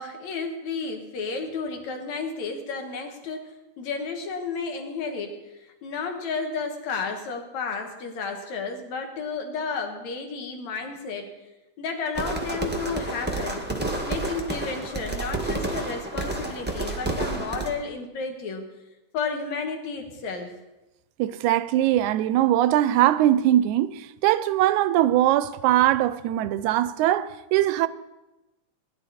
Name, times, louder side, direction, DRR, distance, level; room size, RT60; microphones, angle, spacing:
voice 1, 0.0-11.3 11.8-13.6 14.0-18.7 19.1-20.5, left 4 dB, 65° left, 2.8 m, -32 dB
sound 1, 12.1-17.7, right 2 dB, 10° right, 0.4 m, -30 dB
voice 2, 21.2-27.9, right 13 dB, 80° right, 1.9 m, -21 dB
18.0 x 11.5 x 4.2 m
omnidirectional pair, 3.5 m